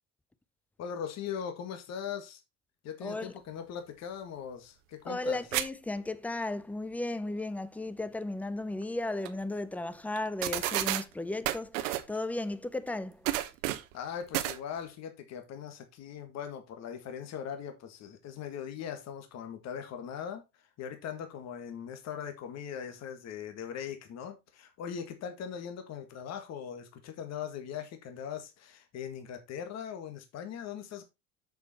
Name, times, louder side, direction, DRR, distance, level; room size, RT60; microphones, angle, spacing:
voice 1, 0.8-2.4 2.8-5.4 13.9-31.0, left 8 dB, 45° left, 1.8 m, -40 dB
voice 2, 3.0-3.3 5.1-13.3, left 2 dB, 5° left, 0.6 m, -35 dB
sound 1, 5.5-5.7 6.0-6.1 8.8-8.9 9.2-9.3 10.2-10.3 10.4-11.0 11.4-12.1 13.2-13.9 14.3-14.6, right 15 dB, 85° right, 1.3 m, -30 dB
6.9 x 6.8 x 4.2 m
supercardioid pair, 130°, 37 cm